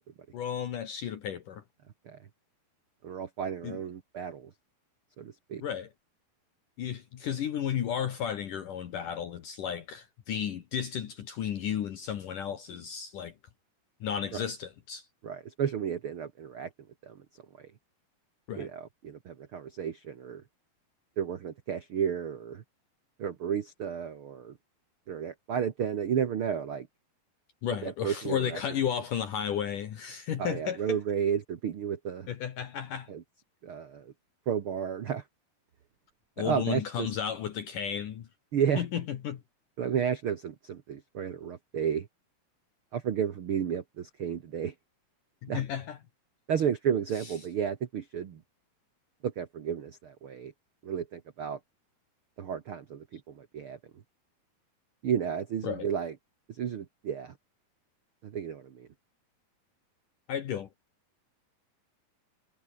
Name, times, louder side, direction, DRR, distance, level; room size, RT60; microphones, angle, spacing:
voice 1, 0.3-1.6 3.6-3.8 5.6-5.9 6.8-13.3 14.0-15.1 18.5-18.7 27.6-31.0 32.3-33.1 36.4-38.3 38.8-39.4 45.4-46.0 47.2-47.3 55.6-55.9 60.3-60.7, left 9 dB, 60° left, 2.9 m, -33 dB
voice 2, 3.0-4.5 5.2-5.6 15.2-16.7 17.0-17.2 17.6-17.7 18.5-20.4 21.2-22.6 23.2-24.5 25.1-26.9 27.8-28.6 30.4-32.3 33.1-33.2 33.6-34.1 34.5-35.2 36.4-37.1 38.5-38.8 39.8-42.1 42.9-44.7 45.5-45.6 46.5-48.4 49.2-50.5 50.8-51.6 52.4-53.8 55.0-56.1 56.5-57.3 58.2-58.9, right 8 dB, 85° right, 1.2 m, -32 dB
omnidirectional pair, 4.6 m